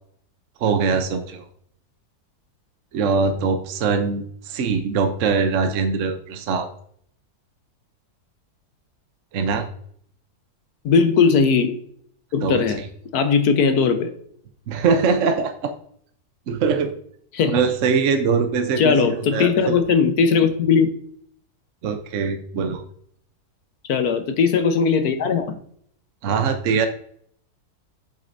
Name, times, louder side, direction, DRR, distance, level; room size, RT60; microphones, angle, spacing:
voice 1, 0.6-1.4 2.9-6.7 9.3-9.7 12.4-12.9 14.7-15.7 16.5-16.9 17.4-19.8 21.8-22.8 26.2-26.9, right 5 dB, 60° right, 7 dB, 1.0 m, -22 dB
voice 2, 10.8-11.8 12.3-12.8 13.1-14.1 17.3-17.6 18.8-20.9 23.9-25.6, left 5 dB, 70° left, 8 dB, 1.4 m, -18 dB
7.7 x 7.6 x 2.6 m, 0.64 s
omnidirectional pair, 1.7 m